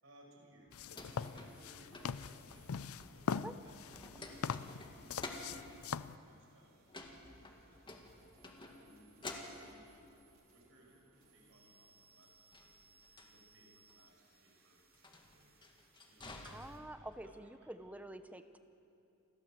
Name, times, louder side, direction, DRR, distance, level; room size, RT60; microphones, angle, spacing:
voice 1, 0.0-9.1 9.6-10.0 10.5-15.4 16.0-18.0, right 1 dB, 70° right, 0 dB, 6.3 m, -65 dB
sound 1, 0.7-6.2, left 6 dB, 85° left, 0.5 m, -42 dB
sound 2, 0.7-3.5 3.8-5.7 6.9-8.9 9.2-10.1 12.2-13.3 13.9-14.1 14.9-17.2, left 2 dB, 25° left, 2.0 m, -51 dB
sound 3, 1.0-16.8, right 4 dB, 45° right, 3.5 m, -70 dB
voice 2, 16.4-18.6, right 1 dB, 5° right, 9 dB, 0.8 m, -48 dB
28.5 x 14.0 x 7.8 m, 2.6 s
head